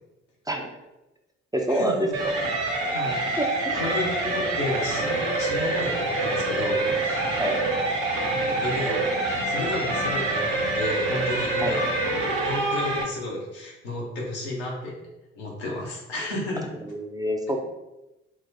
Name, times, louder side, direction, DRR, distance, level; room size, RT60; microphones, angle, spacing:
voice 1, 1.5-2.1 3.4-3.8 7.4-7.6 11.6-11.8 16.8-17.6, equal, 10° right, 1 dB, 0.5 m, -26 dB
sound 1, 2.1-13.0, right 2 dB, 60° right, 0.7 m, -26 dB
voice 2, 2.9-7.3 8.3-9.1 9.5-11.9 12.4-14.9 15.3-16.7, left 2 dB, 80° left, -3 dB, 0.8 m, -32 dB
4.0 x 2.1 x 2.6 m, 0.97 s
figure-of-eight pair, 45°, 32 cm